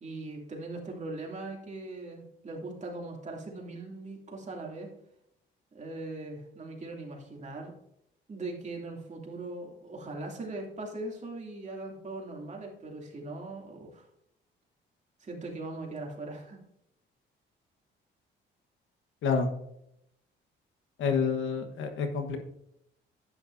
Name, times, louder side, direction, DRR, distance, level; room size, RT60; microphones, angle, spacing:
voice 1, 0.0-4.9 5.7-7.7 8.3-14.1 15.2-16.6, right 2 dB, 35° right, -1 dB, 2.6 m, -40 dB
voice 2, 21.0-22.4, left 5 dB, 80° left, 6 dB, 1.3 m, -28 dB
11.0 x 9.1 x 2.6 m, 0.77 s
cardioid pair, 90°, 20 cm